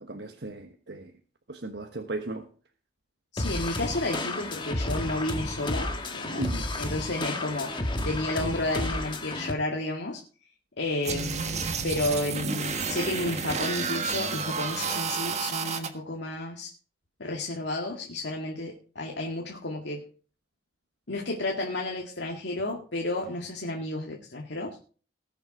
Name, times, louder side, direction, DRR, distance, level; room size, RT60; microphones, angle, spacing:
voice 1, 0.0-1.2 1.5-2.5 6.4-6.7, right 2 dB, 70° right, 5 dB, 1.2 m, -36 dB
voice 2, 3.3-6.4 6.8-10.2 10.8-16.7 17.2-20.0 21.1-24.8, left 2 dB, 85° left, 0 dB, 2.0 m, -32 dB
sound 1, 3.4-9.5, left 2 dB, 30° left, 1.5 m, -32 dB
sound 2, 11.0-15.9, right 5 dB, 40° right, 1.5 m, -30 dB
19.0 x 7.2 x 5.0 m, 0.40 s
head